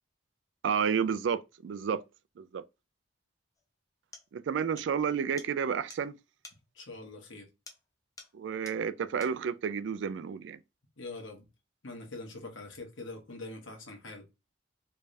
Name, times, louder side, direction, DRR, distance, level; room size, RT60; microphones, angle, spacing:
voice 1, 0.6-2.0 2.4-2.6 4.3-6.2 8.3-10.6, right 7 dB, 70° right, 0.3 m, -31 dB
sound 1, 3.6-3.7 4.1-4.3 4.8-4.9 5.4-5.5 5.9-6.0 6.4-6.6 7.7-7.9 8.2-8.4 8.6-8.8 9.2-9.4, left 3 dB, 15° left, 0.6 m, -50 dB
voice 2, 6.7-7.5 11.0-11.5 11.8-14.2, left 2 dB, 80° left, 1.3 m, -43 dB
3.3 x 3.2 x 2.6 m
head